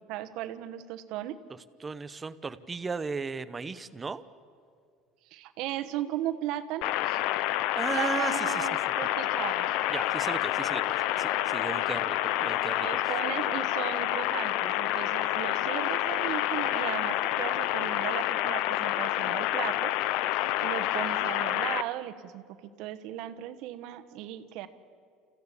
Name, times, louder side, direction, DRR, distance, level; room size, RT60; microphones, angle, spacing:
voice 1, 0.1-1.4 5.3-7.2 7.9-9.7 12.4-12.5 12.8-19.9 20.6-22.4 22.8-24.7, right 13 dB, 70° right, 10 dB, 1.2 m, -36 dB
voice 2, 1.8-4.2 7.7-8.7 9.9-13.1, right 4 dB, 20° right, 14 dB, 0.8 m, -36 dB
sound 1, 6.8-21.8, left 14 dB, 70° left, 0.6 m, -28 dB
29.5 x 15.0 x 8.4 m, 2.2 s
supercardioid pair, 120°, 0 cm